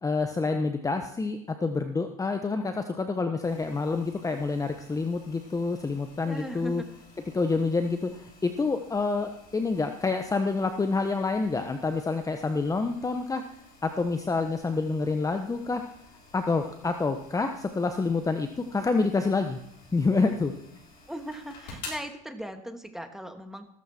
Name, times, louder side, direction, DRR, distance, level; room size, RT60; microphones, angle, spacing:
voice 1, 0.0-6.8 7.3-13.4 13.8-15.8 16.3-19.6 19.9-20.5, left 3 dB, 15° left, 7 dB, 1.2 m, -27 dB
sound 1, 3.4-22.0, left 3 dB, 60° left, 7.4 m, -51 dB
voice 2, 6.2-6.9 21.1-23.7, equal, ahead, 6 dB, 2.3 m, -38 dB
16.0 x 14.0 x 4.5 m, 0.73 s
hypercardioid pair, 80°, 19 cm